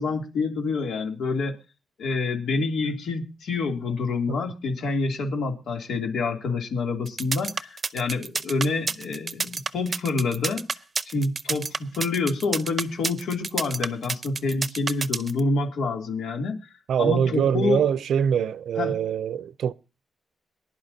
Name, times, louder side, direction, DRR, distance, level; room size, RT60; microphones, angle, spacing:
voice 1, 0.0-1.5 2.0-10.7 11.0-16.6 17.0-17.8 18.8-19.0, left 3 dB, 90° left, 3.0 m, -27 dB
sound 1, 7.1-15.4, right 4 dB, 35° right, 0.6 m, -29 dB
voice 2, 16.9-19.7, right 8 dB, 80° right, 0.6 m, -23 dB
23.5 x 11.0 x 2.8 m
cardioid pair, 115°, 0 cm